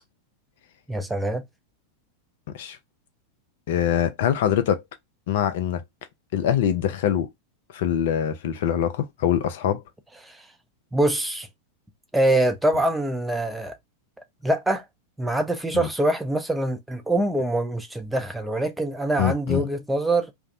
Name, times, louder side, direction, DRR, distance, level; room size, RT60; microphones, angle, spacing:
voice 1, 0.9-1.4 10.2-10.4 10.9-11.5 12.1-13.8 14.4-14.8 15.2-20.3, right 1 dB, 5° right, 0.5 m, -24 dB
voice 2, 3.7-4.8 5.3-5.8 6.3-7.3 7.7-9.8 15.7-15.9 19.2-19.6, left 10 dB, 55° left, 0.3 m, -23 dB
2.5 x 2.0 x 2.5 m
figure-of-eight pair, 90°, 0 cm